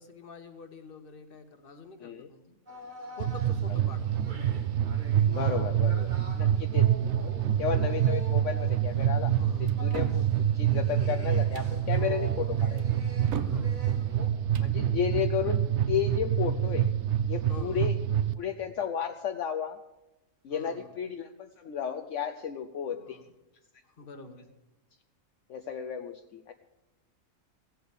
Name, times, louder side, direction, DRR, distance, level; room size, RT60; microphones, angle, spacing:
voice 1, 0.0-2.5 3.2-4.1 6.4-6.6 9.4-9.8 13.3-14.2 17.5-17.9 20.5-20.9 22.9-23.2 23.8-24.5, left 4 dB, 45° left, 8 dB, 1.4 m, -47 dB
sound 1, 2.7-14.3, right 1 dB, 35° right, 1.5 m, -46 dB
sound 2, 3.2-18.3, right 10 dB, 65° right, 0.9 m, -27 dB
voice 2, 5.3-6.9 7.2-9.3 9.6-13.0 14.5-16.9 17.3-17.9 18.4-19.8 20.4-23.2 25.5-26.5, left 8 dB, 70° left, 5 dB, 1.1 m, -33 dB
sound 3, 9.7-10.3 11.4-11.7 12.8-13.6 14.4-14.7, right 7 dB, 80° right, 1.3 m, -38 dB
16.0 x 8.0 x 8.2 m, 0.98 s
omnidirectional pair, 1.4 m